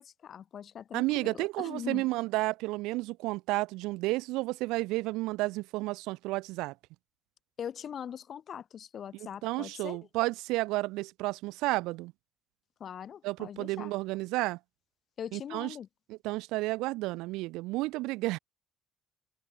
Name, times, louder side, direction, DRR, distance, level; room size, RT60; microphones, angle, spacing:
voice 1, 0.0-2.1 7.6-10.0 12.8-13.9 15.2-15.9, left 8 dB, 35° left, 2.7 m, -41 dB
voice 2, 0.9-6.7 9.4-12.1 13.2-14.6 15.3-15.7 16.1-18.4, right 21 dB, 90° right, 0.5 m, -31 dB
cardioid pair, 170°, 0 cm